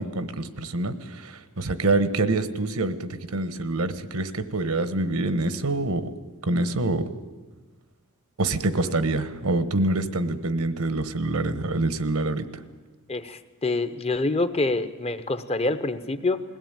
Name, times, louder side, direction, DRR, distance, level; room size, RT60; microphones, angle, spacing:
voice 1, 0.0-6.1 6.4-7.1 8.4-12.6, right 2 dB, 75° right, 12 dB, 1.2 m, -26 dB
voice 2, 13.1-16.4, left 2 dB, 25° left, 12 dB, 0.9 m, -26 dB
21.0 x 17.0 x 9.0 m, 1.3 s
head